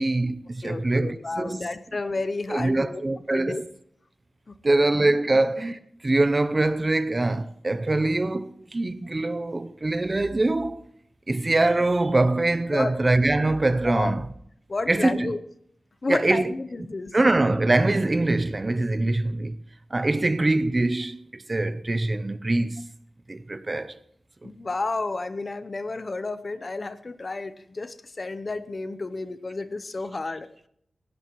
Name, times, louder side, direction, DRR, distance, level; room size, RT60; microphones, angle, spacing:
voice 1, 0.0-1.7 2.5-3.6 4.6-10.8 11.3-14.2 14.9-15.3 16.1-16.5 17.1-19.6 19.9-22.9 23.3-24.0 24.4-24.5, right 2 dB, 25° right, 0.7 m, -23 dB
voice 2, 0.6-3.0 3.3-3.6 4.5-4.8 12.7-13.0 13.8-14.1 14.7-15.4 16.0-17.1 20.1-20.3 24.4-30.5, left 3 dB, 35° left, 0.8 m, -31 dB
18.5 x 16.5 x 3.1 m
wide cardioid pair, 140°, 0 cm